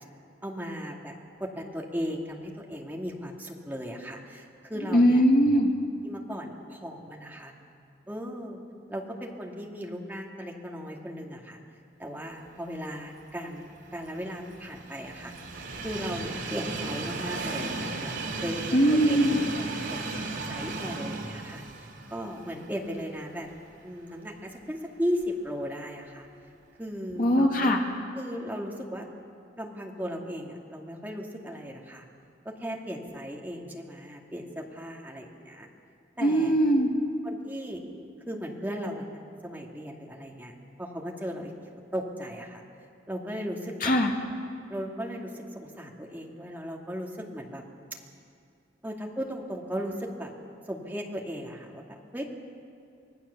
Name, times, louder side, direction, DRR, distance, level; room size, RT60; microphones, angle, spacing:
voice 1, 0.4-5.2 6.0-7.5 8.1-8.6 8.9-11.6 12.0-15.3 15.8-18.2 18.4-19.2 19.5-19.6 19.9-23.5 23.8-26.3 26.8-27.7 28.2-29.0 29.6-32.0 32.4-35.7 36.2-36.6 37.2-37.8 38.3-40.5 40.8-42.6 43.1-44.0 44.7-47.6 48.8-50.3 50.7-52.2, equal, 10° right, 0 dB, 2.2 m, -36 dB
voice 2, 4.9-5.7 18.7-19.4 27.2-27.8 36.2-36.9 43.8-44.1, equal, 50° left, 1 dB, 2.3 m, -21 dB
Train, 13.5-23.6 24.0-24.1 25.2-25.3, right 3 dB, 80° right, 2.8 m, -36 dB
25.5 x 17.5 x 6.9 m, 2.5 s
head